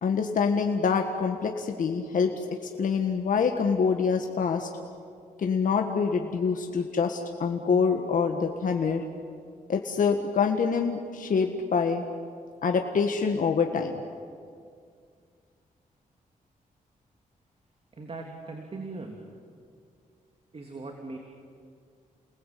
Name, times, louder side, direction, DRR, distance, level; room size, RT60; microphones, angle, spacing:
voice 1, 0.0-2.3 2.8-4.7 5.4-9.0 9.7-12.0 12.6-14.0, left 5 dB, 65° left, 3 dB, 1.7 m, -25 dB
voice 2, 18.0-19.2 20.5-21.2, right 3 dB, 40° right, 2 dB, 3.1 m, -39 dB
30.0 x 19.5 x 8.6 m, 2.2 s
cardioid pair, 90°, 14 cm